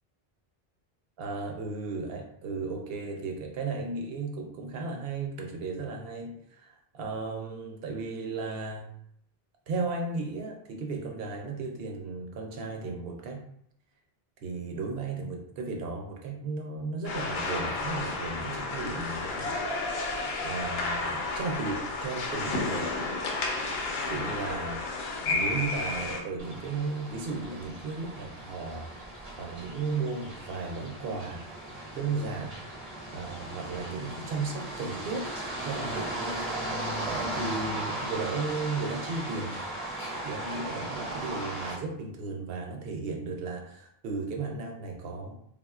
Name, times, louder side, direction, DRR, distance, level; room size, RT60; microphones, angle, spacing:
voice 1, 1.2-8.9 9.7-13.4 14.4-19.6 19.9-22.9 24.1-24.8 25.2-28.9 29.4-31.5 31.9-32.6 33.1-35.3 35.6-36.4 37.0-39.6 40.2-45.3, right 3 dB, 70° right, 2 dB, 0.8 m, -35 dB
sound 1, 17.0-26.2, left 3 dB, 80° left, 0.8 m, -32 dB
sound 2, 26.4-41.8, right 1 dB, 35° right, 0.6 m, -37 dB
3.5 x 2.1 x 2.3 m, 0.70 s
omnidirectional pair, 1.0 m